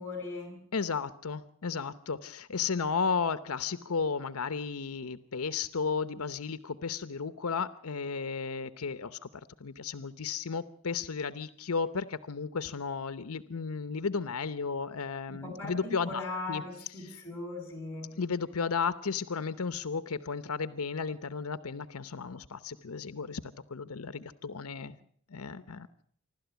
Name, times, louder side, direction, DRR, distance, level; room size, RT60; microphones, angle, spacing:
voice 1, 0.0-0.6 15.3-18.2, left 3 dB, 10° left, 3 dB, 7.1 m, -39 dB
voice 2, 0.7-16.2 16.5-16.6 17.0-17.2 18.2-25.0 25.3-25.9, left 5 dB, 80° left, 13 dB, 0.8 m, -34 dB
27.0 x 12.5 x 8.1 m, 0.62 s
head